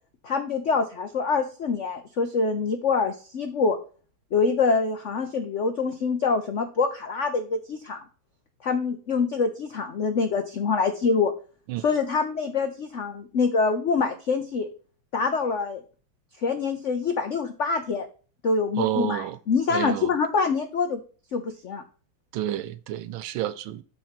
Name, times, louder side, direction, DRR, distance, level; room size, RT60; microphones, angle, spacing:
voice 1, 0.2-3.8 4.3-8.0 8.6-11.3 11.8-14.7 15.1-15.8 16.4-18.1 18.4-21.0 21.3-21.8, left 4 dB, 75° left, 0.6 m, -25 dB
voice 2, 18.8-19.4 19.7-20.1 22.3-23.8, right 12 dB, 80° right, 1.3 m, -29 dB
6.7 x 4.4 x 5.7 m
omnidirectional pair, 2.3 m